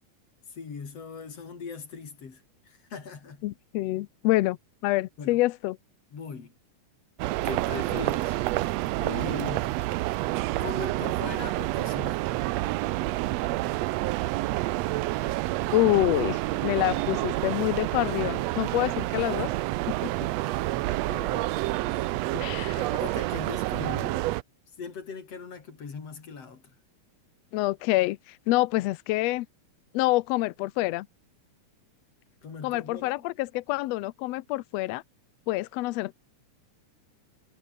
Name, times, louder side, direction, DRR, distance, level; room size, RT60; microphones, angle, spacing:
voice 1, 0.5-3.4 5.2-5.4 6.1-6.5 7.4-8.4 9.0-9.7 10.6-12.3 21.0-21.5 22.7-24.4 24.8-26.6 32.4-33.2, left 5 dB, 50° left, 4.6 m, -39 dB
voice 2, 3.4-4.6 4.8-5.8 15.7-19.5 20.0-20.1 22.3-22.8 27.5-29.5 29.9-31.1 32.6-35.0 35.5-36.1, left 18 dB, 85° left, 1.4 m, -26 dB
sound 1, 7.2-24.4, right 18 dB, 90° right, 1.4 m, -28 dB
omnidirectional pair, 3.7 m